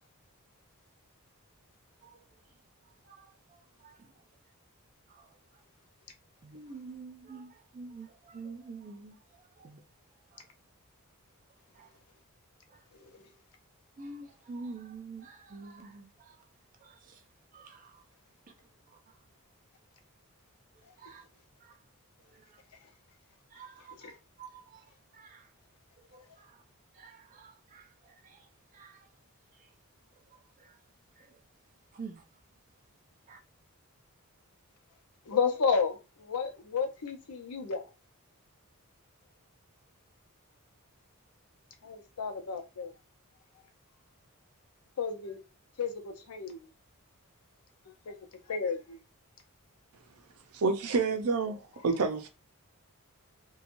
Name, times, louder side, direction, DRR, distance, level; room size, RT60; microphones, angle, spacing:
voice 1, 3.1-4.1 5.1-5.3 6.4-9.8 10.3-10.4 11.8-11.9 12.7-12.8 14.0-16.4 16.8-17.2 17.5-18.0 21.0-21.2 21.6-21.7 22.3-22.6 23.5-24.8 25.1-25.5 26.1-26.5 27.0-28.5 28.7-29.0 30.6-30.8 31.2-31.3 31.9-32.2 33.3-33.4, right 4 dB, 35° right, 0.4 m, -48 dB
voice 2, 35.3-37.8 41.8-42.9 45.0-45.4 45.8-46.7 48.1-48.2 48.5-49.0, left 5 dB, 85° left, 0.6 m, -32 dB
voice 3, 50.5-52.3, right 4 dB, 85° right, 0.6 m, -28 dB
2.9 x 2.2 x 2.5 m
head